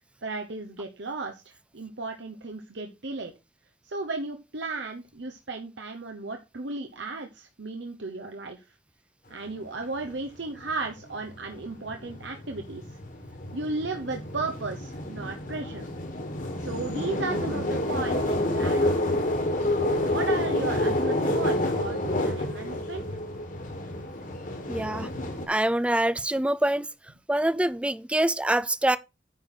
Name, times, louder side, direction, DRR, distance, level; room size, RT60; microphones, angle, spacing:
voice 1, 0.2-3.3 3.8-8.7 9.3-12.8 13.5-15.9 16.6-19.0 19.6-23.2, right 3 dB, 70° right, 1.0 m, -35 dB
sound 1, 10.0-10.1 10.6-25.5, left 1 dB, 45° left, 1.9 m, -29 dB
voice 2, 24.7-25.1 25.5-26.9 27.3-29.0, right 1 dB, 5° right, 0.4 m, -25 dB
9.6 x 5.8 x 4.4 m
head